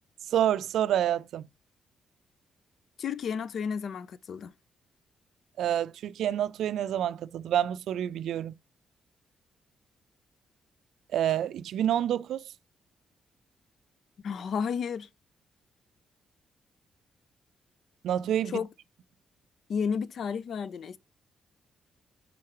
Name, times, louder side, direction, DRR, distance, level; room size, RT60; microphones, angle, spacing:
voice 1, 0.3-1.4 5.6-8.5 11.1-12.4 18.0-18.6, right 10 dB, 80° right, 0.4 m, -28 dB
voice 2, 3.0-4.5 14.2-15.1 18.5-18.7 19.7-21.0, left 6 dB, 60° left, 0.4 m, -32 dB
5.8 x 3.8 x 4.7 m
cardioid pair, 120°, 0 cm